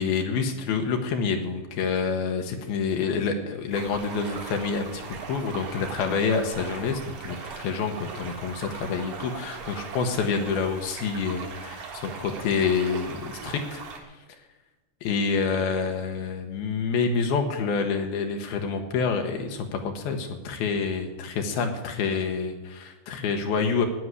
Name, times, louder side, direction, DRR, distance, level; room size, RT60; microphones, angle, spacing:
voice 1, 0.0-13.8 15.0-23.9, left 5 dB, 85° left, 4 dB, 3.0 m, -27 dB
sound 1, 3.7-14.0, right 5 dB, 65° right, 3.5 m, -39 dB
16.0 x 6.2 x 9.7 m, 1.2 s
omnidirectional pair, 4.3 m